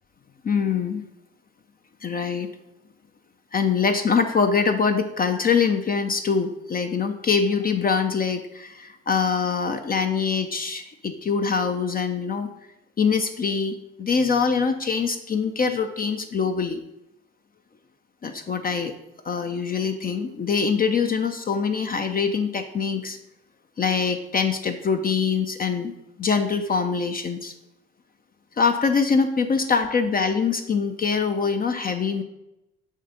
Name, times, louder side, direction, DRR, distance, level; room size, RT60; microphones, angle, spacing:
voice 1, 0.4-1.0 2.0-2.5 3.5-12.5 13.0-16.8 18.2-18.9 19.2-23.2 23.8-25.9 26.2-27.5 28.6-32.2, left 5 dB, 25° left, 7 dB, 0.5 m, -24 dB
6.4 x 3.3 x 5.1 m, 0.89 s
figure-of-eight pair, 55°, 37 cm